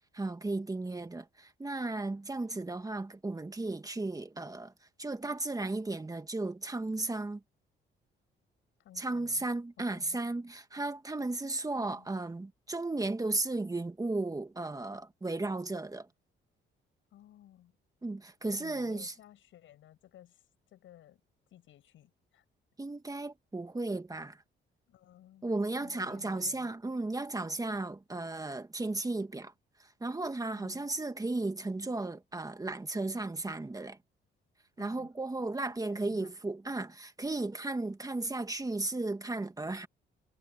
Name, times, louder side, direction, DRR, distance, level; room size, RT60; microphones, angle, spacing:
voice 1, 0.1-4.7 5.0-7.4 9.0-16.1 18.0-19.1 22.8-24.4 25.4-29.5 30.0-34.0 34.8-39.9, right 2 dB, 15° right, 1.8 m, -35 dB
voice 2, 8.8-9.5 9.8-10.2 11.7-12.1 17.1-17.7 18.4-21.2 21.5-22.4 24.9-25.5 25.8-26.7 30.5-30.9 34.8-35.1 35.9-36.3, left 12 dB, 80° left, 8.0 m, -56 dB
cardioid pair, 90°, 20 cm